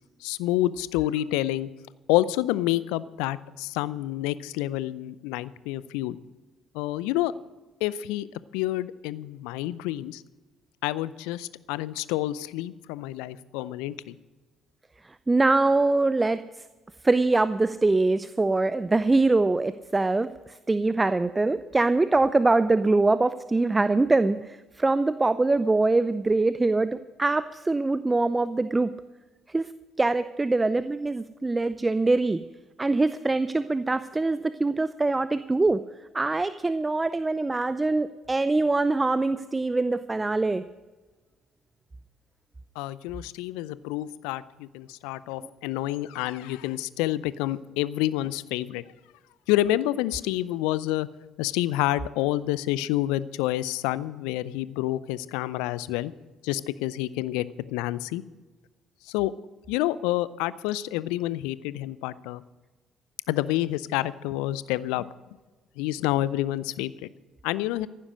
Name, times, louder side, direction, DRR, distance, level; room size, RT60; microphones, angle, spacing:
voice 1, 0.2-1.7 2.1-6.2 6.7-7.3 7.8-8.3 8.5-10.2 10.8-14.2 42.8-48.8 49.5-51.1 51.4-56.1 56.4-58.2 59.1-59.3 59.7-62.4 63.3-65.1 65.8-67.1 67.4-67.9, left 15 dB, 70° left, 18 dB, 0.5 m, -28 dB
voice 2, 15.0-16.4 17.0-28.9 29.5-29.7 30.0-32.4 32.8-35.8 36.1-40.6 45.4-45.5, right 3 dB, 20° right, 14 dB, 0.6 m, -23 dB
15.0 x 11.5 x 6.4 m, 1.3 s
hypercardioid pair, 50°, 0 cm